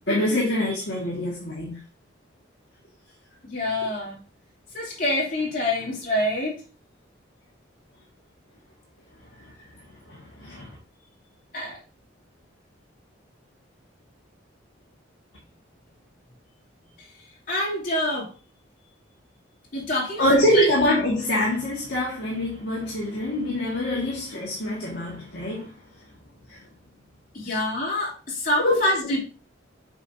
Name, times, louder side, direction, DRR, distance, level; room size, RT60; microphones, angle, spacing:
voice 1, 0.1-1.8 10.1-10.7 20.2-25.7 26.5-26.6 27.4-27.6 28.6-28.8 29.0-29.1, left 1 dB, 60° left, 1.7 m, -24 dB
voice 2, 3.5-4.2 4.7-6.5 11.5-11.8 17.5-18.3 19.7-20.7 27.3-29.2, left 1 dB, 40° left, 3.0 m, -26 dB
7.1 x 5.3 x 2.7 m
head